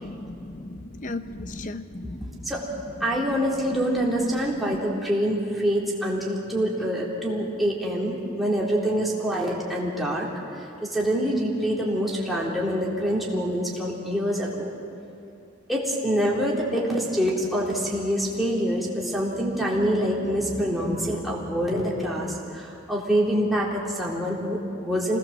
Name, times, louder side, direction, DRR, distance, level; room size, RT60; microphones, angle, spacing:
voice 1, 0.0-2.5 4.4-4.8, left 2 dB, 40° left, 10 dB, 0.9 m, -37 dB
voice 2, 3.0-10.3 10.8-14.7 15.7-25.2, equal, ahead, -5 dB, 3.8 m, -25 dB
26.5 x 19.5 x 7.5 m, 2.6 s
head